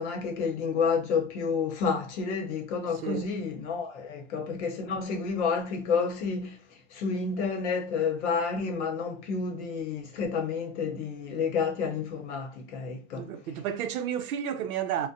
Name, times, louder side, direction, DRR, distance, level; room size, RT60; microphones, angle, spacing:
voice 1, 0.0-6.6 6.9-13.3, left 5 dB, 55° left, 0.9 m, -30 dB
voice 2, 13.2-15.1, right 9 dB, 85° right, 0.6 m, -31 dB
2.5 x 2.1 x 2.6 m
supercardioid pair, 160°, 42 cm